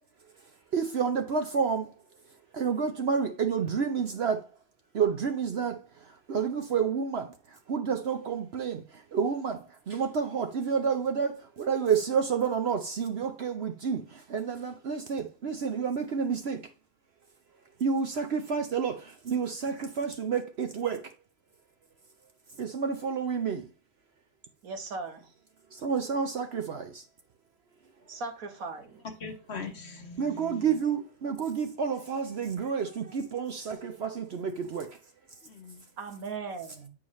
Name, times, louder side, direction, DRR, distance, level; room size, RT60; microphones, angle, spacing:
voice 1, 0.7-1.9 2.5-4.4 4.9-5.8 6.3-7.3 7.7-16.6 17.8-21.0 22.6-23.7 25.7-27.0 30.2-34.9, right 6 dB, 55° right, 0.9 m, -29 dB
voice 2, 24.6-25.3 28.1-29.0 36.0-36.9, right 4 dB, 75° right, 1.7 m, -38 dB
voice 3, 29.0-30.7 35.4-35.8, left 4 dB, 50° left, 1.3 m, -41 dB
8.8 x 4.7 x 3.1 m
omnidirectional pair, 1.5 m